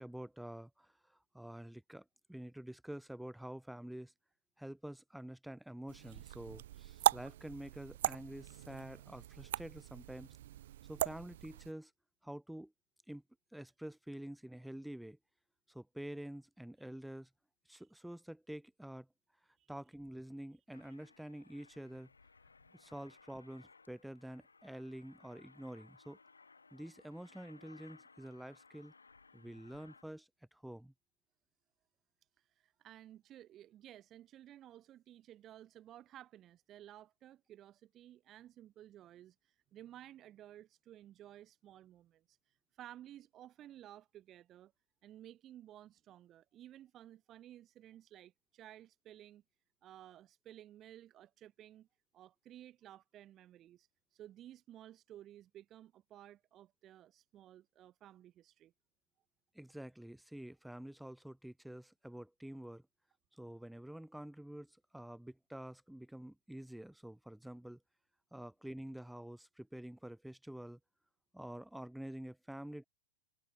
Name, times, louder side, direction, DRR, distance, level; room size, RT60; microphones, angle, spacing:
voice 1, 0.0-4.1 4.6-10.4 10.8-11.9 12.2-12.7 13.1-13.2 13.5-15.2 15.7-17.3 17.7-19.1 19.7-22.1 22.7-26.2 26.7-28.9 29.3-30.9 59.5-62.8 63.3-67.8 68.3-70.8 71.3-72.8, right 1 dB, ahead, 3.8 m, -48 dB
sound 1, 5.9-11.7, right 13 dB, 60° right, 0.8 m, -38 dB
Aircraft, 20.7-30.0, left 4 dB, 80° left, 5.8 m, -63 dB
voice 2, 32.6-42.4 42.8-44.7 45.0-49.4 49.8-51.9 52.1-58.7, right 12 dB, 30° right, 2.9 m, -55 dB
figure-of-eight pair, 95°, 0 cm